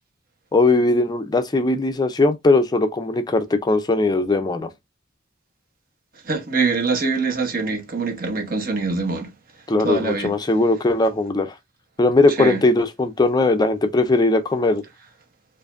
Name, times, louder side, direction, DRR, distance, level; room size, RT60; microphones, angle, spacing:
voice 1, 0.5-4.7 9.7-11.5 12.0-14.8, left 2 dB, 20° left, 0.4 m, -19 dB
voice 2, 6.2-9.3 9.8-10.4 12.4-12.6, right 4 dB, 50° right, 1.0 m, -23 dB
4.8 x 2.5 x 2.4 m
head